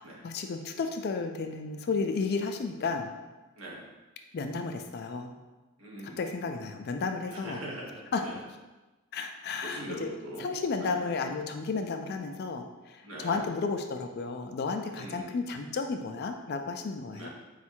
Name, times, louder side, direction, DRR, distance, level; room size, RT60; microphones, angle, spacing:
voice 1, 0.2-3.1 4.3-5.3 6.2-7.6 8.1-8.2 9.1-10.1 10.4-17.3, left 4 dB, 45° left, 5 dB, 0.3 m, -33 dB
voice 2, 5.8-6.3 7.3-8.4 9.6-10.5 10.8-11.0 13.0-13.4 14.9-15.4 17.1-17.3, right 1 dB, 65° right, -3 dB, 1.0 m, -42 dB
4.3 x 2.4 x 4.3 m, 1.2 s
head